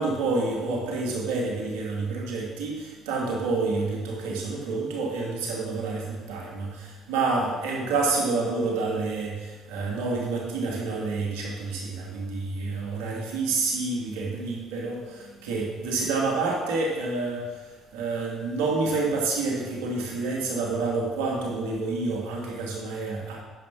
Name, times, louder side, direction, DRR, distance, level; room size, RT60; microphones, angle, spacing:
voice 1, 0.0-23.4, right 3 dB, 90° right, -2 dB, 2.2 m, -28 dB
10.5 x 5.3 x 6.0 m, 1.3 s
supercardioid pair, 65°, 0 cm